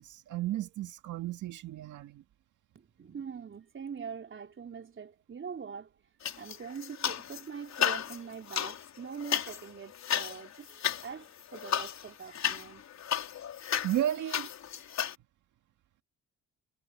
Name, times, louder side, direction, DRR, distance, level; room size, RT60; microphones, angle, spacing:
voice 1, 0.0-2.2 13.8-14.5, right 12 dB, 80° right, 1.9 m, -33 dB
voice 2, 2.7-5.9 6.4-12.8, right 6 dB, 40° right, 3.9 m, -43 dB
sound 1, 6.2-7.4 7.7-15.2, left 9 dB, 65° left, 4.2 m, -34 dB
cardioid pair, 90°, 30 cm